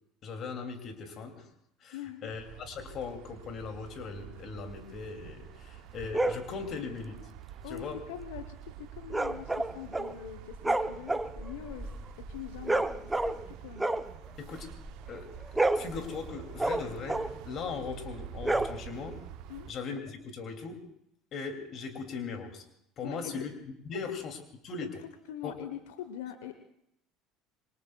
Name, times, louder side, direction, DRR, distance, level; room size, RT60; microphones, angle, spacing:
voice 1, 0.2-1.5 1.8-7.2 7.7-8.0 14.4-14.7 15.1-19.2 19.7-20.8 21.3-22.6 23.0-23.5 23.8-24.4 24.6-24.9 25.4-25.5, left 5 dB, 50° left, 5 dB, 2.6 m, -39 dB
voice 2, 1.9-2.3 7.6-11.9 12.2-12.9 13.2-13.9 19.5-19.7 23.0-23.5 25.3-26.5, left 10 dB, 75° left, 9 dB, 1.0 m, -43 dB
sound 1, 2.3-19.7, right 10 dB, 65° right, 0.7 m, -48 dB
sound 2, 6.1-6.5 9.1-10.2 10.5-13.5 13.8-15.0 15.3-17.4 18.3-19.2, right 2 dB, 10° right, 0.7 m, -31 dB
26.5 x 23.5 x 2.3 m, 0.75 s
hypercardioid pair, 70°, 0 cm